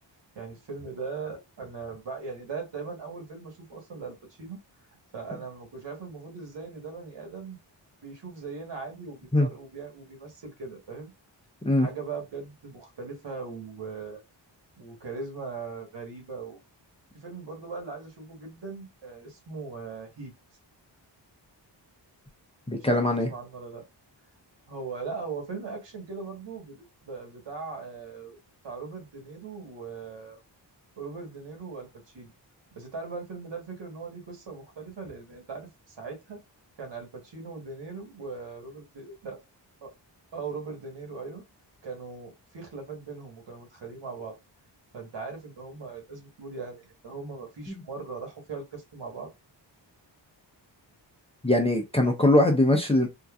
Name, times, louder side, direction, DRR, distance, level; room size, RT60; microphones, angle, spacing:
voice 1, 0.3-4.6 5.1-7.6 8.0-11.1 11.8-14.2 14.8-16.6 17.1-20.3 22.8-23.8 24.7-28.4 28.6-30.4 31.0-32.3 32.7-36.4 36.8-39.4 39.8-39.9 40.3-41.4 41.8-44.3 44.9-49.3, right 4 dB, 70° right, 1.4 m, -39 dB
voice 2, 22.7-23.3 47.7-47.8 51.4-53.1, left 1 dB, 15° left, 0.6 m, -22 dB
3.8 x 2.5 x 2.3 m
wide cardioid pair, 110°, 44 cm